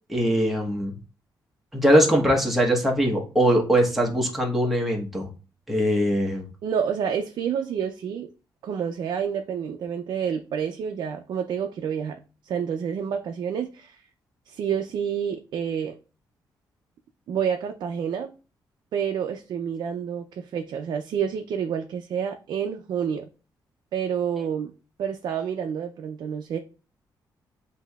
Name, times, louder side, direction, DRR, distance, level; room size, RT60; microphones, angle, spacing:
voice 1, 0.1-0.9 1.7-5.3 5.7-6.5, equal, 5° right, 1.0 m, -21 dB
voice 2, 6.6-8.3 8.6-12.2 12.4-14.0 14.5-16.0 17.3-18.3 18.9-23.3 23.9-24.7 25.0-26.6, right 7 dB, 70° right, 0.4 m, -28 dB
7.8 x 2.7 x 2.3 m
wide cardioid pair, 150°, 8 cm